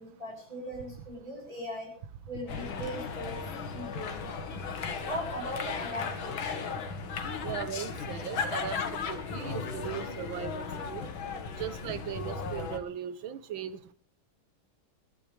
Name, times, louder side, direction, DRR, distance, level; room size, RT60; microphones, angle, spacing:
voice 1, 0.0-2.0 2.3-4.2 4.9-6.8, equal, 15° right, -2 dB, 6.2 m, -39 dB
sound 1, 2.5-12.8, left 5 dB, 80° left, 2.3 m, -36 dB
voice 2, 7.4-8.8 9.1-10.6 10.9-11.1 11.6-13.9, right 9 dB, 85° right, 13 dB, 1.7 m, -38 dB
26.0 x 12.0 x 3.3 m, 0.41 s
omnidirectional pair, 2.1 m